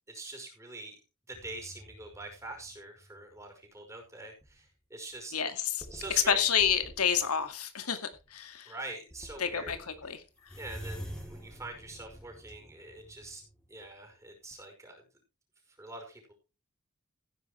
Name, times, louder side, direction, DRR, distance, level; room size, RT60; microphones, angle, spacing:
voice 1, 0.1-1.0 1.3-5.3 5.9-6.5 8.7-9.7 10.0-10.1 10.6-13.4 13.7-15.0 15.8-16.3, right 2 dB, 15° right, 5.3 m, -44 dB
sound 1, 1.3-3.4 4.0-4.6 5.1-5.2 5.8-7.4 8.1-8.3 8.8-8.9 9.1-14.2 14.5-14.6, equal, 5° left, 3.2 m, -48 dB
voice 2, 5.3-5.9 6.3-8.7 9.4-10.2, left 8 dB, 90° left, 2.0 m, -29 dB
16.0 x 10.0 x 3.2 m
head